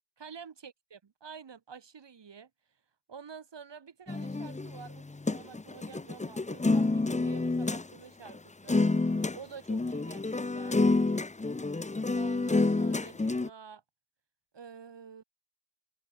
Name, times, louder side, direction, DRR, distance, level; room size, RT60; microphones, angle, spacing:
voice 1, 0.2-2.5 3.1-5.0 5.3-8.8 9.3-10.8 12.1-13.8 14.5-15.2, right 6 dB, 70° right, 4.1 m, -49 dB
sound 1, 4.1-7.8 8.3-8.4 8.7-9.4 9.7-13.5, left 3 dB, 15° left, 0.8 m, -28 dB
open air
wide cardioid pair, 110°, 43 cm